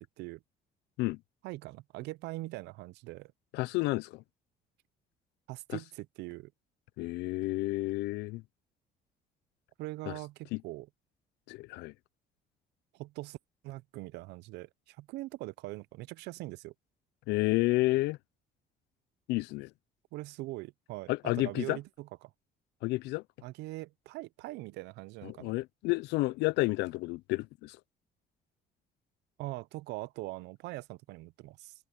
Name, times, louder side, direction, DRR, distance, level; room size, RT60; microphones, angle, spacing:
voice 1, 1.4-3.3 5.5-6.5 9.8-10.9 12.9-13.4 13.6-16.7 20.1-22.3 23.4-25.5 29.4-31.7, right 19 dB, 85° right, 0.5 m, -42 dB
voice 2, 3.5-4.2 7.0-8.4 10.1-10.2 10.5-10.6 11.5-11.9 17.3-18.2 19.3-19.7 21.1-21.8 22.8-23.2 25.2-27.8, left 21 dB, 85° left, 0.5 m, -30 dB
cardioid pair, 110°, 17 cm